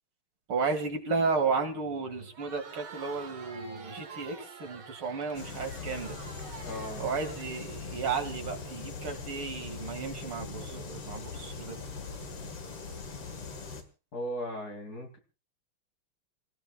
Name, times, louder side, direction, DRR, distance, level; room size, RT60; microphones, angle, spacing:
voice 1, 0.5-6.2 7.0-11.8, right 4 dB, 70° right, 3 dB, 3.2 m, -33 dB
Crowd, 2.2-8.2, right 5 dB, 55° right, 1.9 m, -48 dB
sound 1, 5.3-13.8, left 4 dB, 85° left, 2.9 m, -41 dB
voice 2, 6.6-7.1 14.1-15.2, equal, 45° left, 3 dB, 3.3 m, -37 dB
28.5 x 15.5 x 2.4 m, 0.34 s
omnidirectional pair, 2.4 m